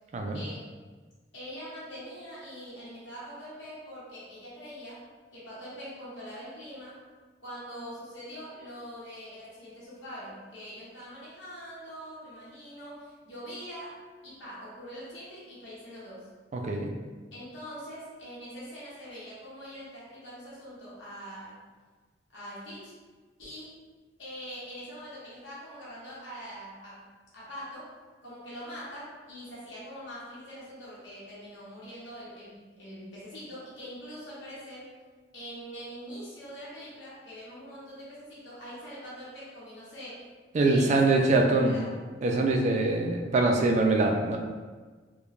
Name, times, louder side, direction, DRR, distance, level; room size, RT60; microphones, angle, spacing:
voice 1, 1.3-5.0 5.3-7.0 7.4-16.3 17.3-21.6 22.3-22.9 23.4-23.8 24.2-27.1 27.3-27.9 28.2-35.0 35.3-40.3 40.6-42.0, equal, 75° left, -8 dB, 0.9 m, -43 dB
voice 2, 16.5-16.9 40.5-41.8 42.2-44.4, right 2 dB, 40° right, 2 dB, 0.3 m, -24 dB
3.0 x 2.1 x 2.4 m, 1.4 s
head